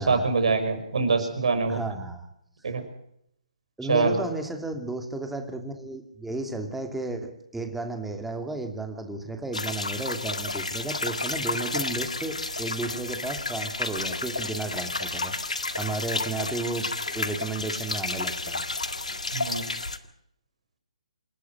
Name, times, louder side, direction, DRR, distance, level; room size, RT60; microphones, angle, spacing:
voice 1, 0.0-1.8 2.6-2.8 3.9-4.2 19.3-19.7, right 4 dB, 60° right, 7 dB, 5.7 m, -24 dB
voice 2, 1.7-2.3 3.8-18.6 19.1-19.3, right 2 dB, 5° right, 4 dB, 2.7 m, -33 dB
sound 1, 9.5-20.0, left 3 dB, 80° left, 1.8 m, -31 dB
27.5 x 11.5 x 9.1 m, 0.73 s
figure-of-eight pair, 135°, 4 cm